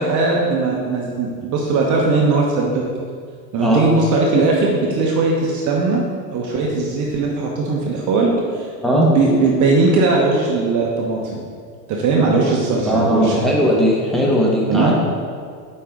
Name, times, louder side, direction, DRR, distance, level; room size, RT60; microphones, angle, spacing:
voice 1, 0.0-2.8 3.5-8.7 9.1-11.4 11.9-13.4 14.7-14.9, right 3 dB, 35° right, -1 dB, 1.1 m, -19 dB
voice 2, 12.9-14.9, equal, ahead, -5 dB, 1.5 m, -17 dB
8.0 x 5.3 x 3.8 m, 2.1 s
hypercardioid pair, 105°, 49 cm